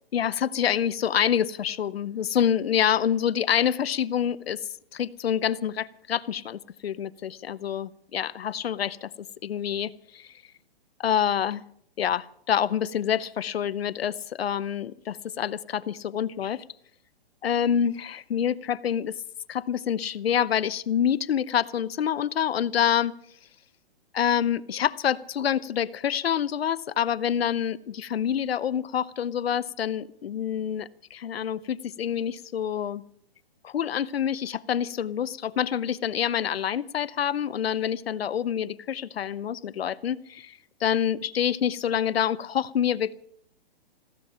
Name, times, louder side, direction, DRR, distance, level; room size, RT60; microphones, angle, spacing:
voice 1, 0.1-4.6 4.9-9.1 9.4-10.3 11.0-11.6 12.0-16.6 17.4-19.2 19.5-23.1 24.1-33.0 33.6-43.1, left 9 dB, 80° left, 18 dB, 0.8 m, -27 dB
16.5 x 15.0 x 5.7 m, 0.66 s
hypercardioid pair, 150°, 30 cm